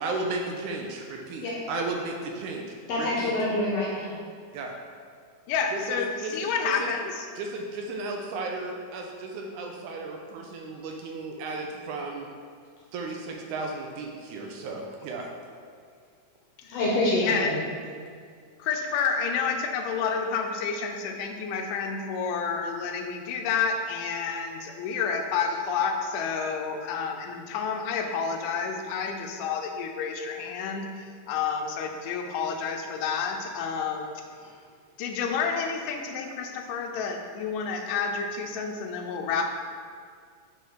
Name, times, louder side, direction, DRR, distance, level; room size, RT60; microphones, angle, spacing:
voice 1, 0.0-3.4 4.5-4.7 5.7-6.9 7.4-12.3 12.9-15.3, right 3 dB, 80° right, 1 dB, 1.9 m, -34 dB
voice 2, 2.9-4.1 16.7-17.5, left 1 dB, 70° left, -4 dB, 1.7 m, -26 dB
voice 3, 5.5-7.3 16.6-16.8 17.2-17.6 18.6-34.1 35.0-39.5, left 6 dB, 85° left, 4 dB, 2.2 m, -29 dB
6.3 x 4.0 x 4.5 m, 2.1 s
omnidirectional pair, 3.7 m